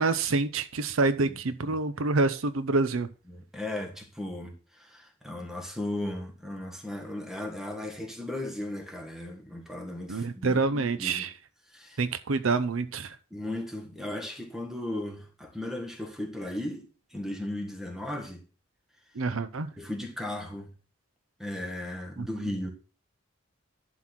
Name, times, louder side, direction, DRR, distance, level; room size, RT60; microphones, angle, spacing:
voice 1, 0.0-3.1 10.1-11.3 12.0-13.2 19.2-19.7 22.2-22.3, right 3 dB, 85° right, 0.7 m, -27 dB
voice 2, 3.3-11.3 11.7-12.0 13.3-18.4 19.8-20.7 21.4-22.7, left 1 dB, ahead, 1.7 m, -36 dB
11.0 x 4.1 x 6.0 m
head